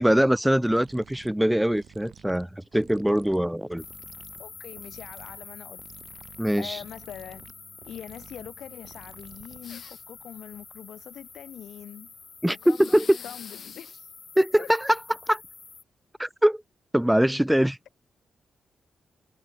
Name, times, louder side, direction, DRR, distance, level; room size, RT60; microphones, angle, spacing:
voice 1, 0.0-3.8 6.4-6.8 12.4-13.2 14.4-15.4 16.2-16.6 16.9-17.8, equal, 5° right, 0.5 m, -23 dB
sound 1, 0.6-9.9, right 8 dB, 55° right, 6.8 m, -52 dB
sound 2, 3.8-15.8, left 5 dB, 30° left, 7.3 m, -47 dB
voice 2, 4.4-5.8 6.6-7.4 7.8-12.1 12.5-14.1 14.3-14.7, left 10 dB, 90° left, 4.3 m, -43 dB
sound 3, 9.6-10.2 12.6-14.0, left 7 dB, 55° left, 4.5 m, -44 dB
wide cardioid pair, 170°, 0 cm